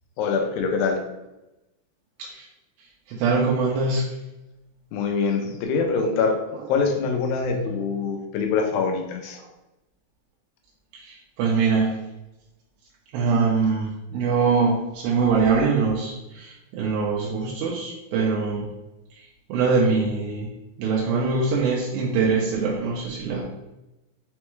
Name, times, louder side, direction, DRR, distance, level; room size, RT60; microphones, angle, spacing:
voice 1, 0.2-1.0 4.9-6.4 6.7-9.4, left 5 dB, 80° left, 3 dB, 2.4 m, -24 dB
voice 2, 3.1-4.1 10.9-11.9 13.1-18.7 19.5-20.5 20.8-23.4, right 4 dB, 85° right, -3 dB, 2.4 m, -23 dB
6.1 x 2.3 x 3.1 m, 0.95 s
omnidirectional pair, 4.2 m